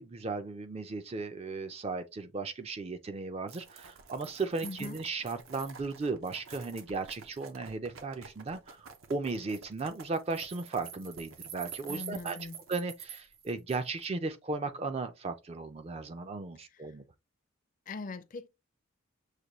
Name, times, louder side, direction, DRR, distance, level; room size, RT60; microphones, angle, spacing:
voice 1, 0.0-17.0, right 3 dB, 30° right, 0.4 m, -36 dB
sound 1, 3.5-14.1, right 7 dB, 75° right, 0.7 m, -48 dB
voice 2, 4.6-5.0 11.9-12.6 17.9-18.5, left 3 dB, 40° left, 0.4 m, -41 dB
6.5 x 2.2 x 2.9 m
head